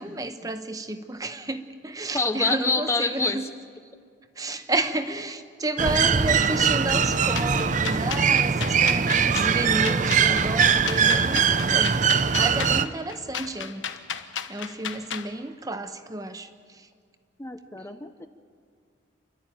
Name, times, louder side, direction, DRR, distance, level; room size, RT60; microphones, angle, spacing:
voice 1, 0.0-3.5 4.4-11.4 11.7-13.9 14.5-16.9, right 2 dB, 20° right, 9 dB, 0.9 m, -31 dB
voice 2, 2.1-3.4 17.4-18.3, left 3 dB, 15° left, 8 dB, 0.6 m, -26 dB
sound 1, 5.8-12.9, right 6 dB, 40° right, 0.6 m, -21 dB
sound 2, 7.3-15.3, left 8 dB, 80° left, 1.1 m, -34 dB
29.5 x 12.0 x 9.0 m, 2.1 s
head